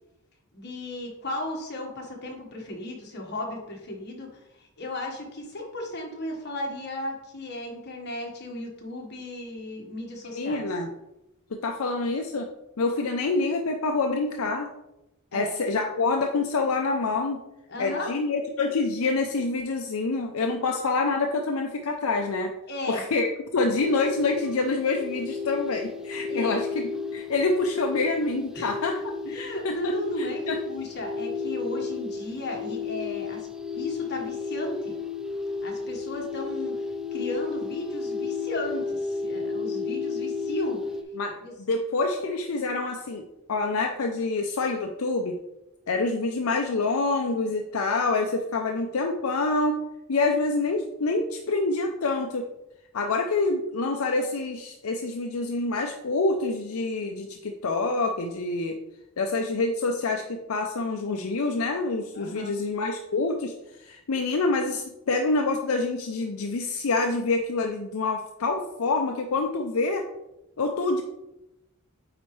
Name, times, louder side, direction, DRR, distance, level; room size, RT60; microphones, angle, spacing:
voice 1, 0.5-4.3 4.6-10.7 15.3-15.5 17.7-18.1 20.6-20.7 22.7-23.0 26.1-26.6 28.5-28.7 29.2-33.5 33.7-34.9 35.6-36.8 37.1-40.8 41.4-41.5 62.1-62.5, left 1 dB, 50° left, 0 dB, 1.4 m, -35 dB
voice 2, 10.4-10.9 11.5-12.5 12.8-14.7 15.3-17.4 17.8-22.5 22.9-26.8 27.1-29.0 29.3-29.9 30.2-30.6 41.1-43.2 43.5-45.4 45.9-49.8 50.1-52.5 52.9-58.8 59.2-63.5 63.8-70.1 70.6-71.0, left 3 dB, 75° left, 3 dB, 0.6 m, -26 dB
sound 1, 23.8-41.0, left 4 dB, 5° right, 0.4 m, -33 dB
8.8 x 4.1 x 3.2 m, 0.91 s
head